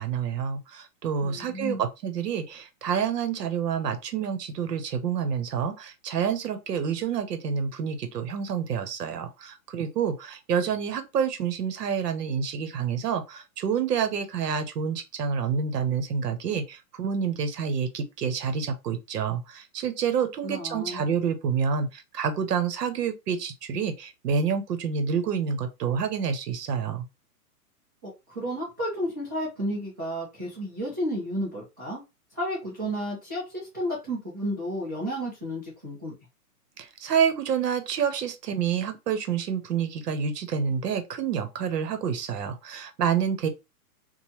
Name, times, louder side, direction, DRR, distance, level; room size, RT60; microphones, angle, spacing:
voice 1, 0.0-27.1 37.0-43.5, right 7 dB, 85° right, 0.8 m, -28 dB
voice 2, 1.2-1.8 20.4-21.0 28.0-32.0 32.3-36.1, equal, 15° right, 0.4 m, -32 dB
3.1 x 2.1 x 2.9 m
hypercardioid pair, 155°, 47 cm